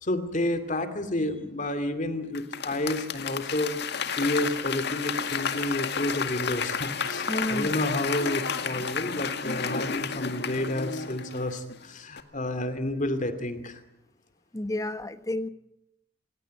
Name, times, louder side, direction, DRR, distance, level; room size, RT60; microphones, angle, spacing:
voice 1, 0.0-13.8, left 1 dB, 45° left, 9 dB, 2.5 m, -30 dB
Applause / Crowd, 2.3-11.8 12.2-12.3, left 6 dB, 60° left, 2.0 m, -31 dB
voice 2, 7.3-7.7 14.5-15.5, left 1 dB, 20° left, 12 dB, 1.2 m, -30 dB
28.0 x 17.0 x 9.6 m, 0.83 s
head